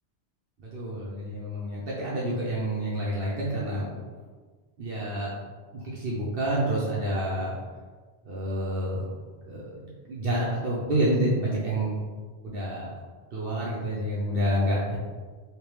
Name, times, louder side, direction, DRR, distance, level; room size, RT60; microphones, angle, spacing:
voice 1, 0.6-4.0 4.8-5.4 5.7-7.6 8.2-9.1 9.4-12.0 12.4-12.9 13.3-15.0, right 1 dB, 60° right, -6 dB, 0.8 m, -28 dB
3.2 x 2.9 x 3.1 m, 1.4 s
omnidirectional pair, 1.1 m